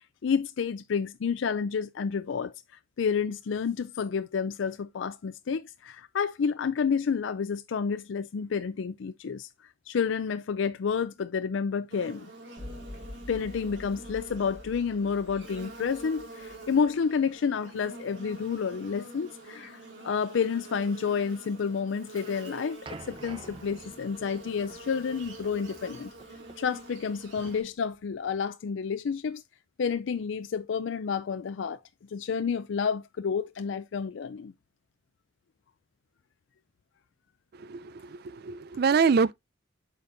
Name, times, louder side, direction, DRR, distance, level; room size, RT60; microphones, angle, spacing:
voice 1, 0.2-2.5 3.0-9.5 9.9-12.3 13.3-19.8 20.0-22.8 23.1-26.1 26.6-29.4 29.8-31.8 32.1-34.5, left 6 dB, 80° left, 0.4 m, -30 dB
Buzz, 11.9-27.6, right 2 dB, 75° right, 2.4 m, -46 dB
sound 1, 12.6-16.9, left 1 dB, 5° right, 4.2 m, -46 dB
sound 2, 22.8-28.3, right 2 dB, 25° right, 0.7 m, -49 dB
voice 2, 37.6-39.3, right 5 dB, 55° right, 0.4 m, -25 dB
8.4 x 5.1 x 2.6 m
head